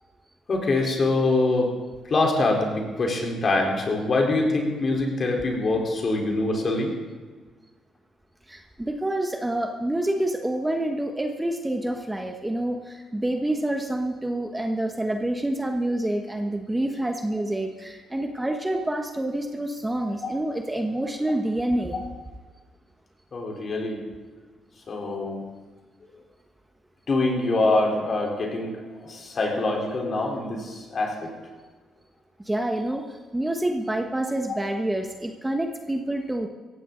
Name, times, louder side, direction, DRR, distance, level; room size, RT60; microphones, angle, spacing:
voice 1, 0.5-1.7 2.0-6.9 23.3-24.0 24.9-25.4 27.1-31.3, left 2 dB, 45° left, 0 dB, 3.9 m, -24 dB
voice 2, 8.5-22.0 32.4-36.5, right 1 dB, 10° right, 4 dB, 1.2 m, -27 dB
17.5 x 15.5 x 3.9 m, 1.4 s
cardioid pair, 90°, 0 cm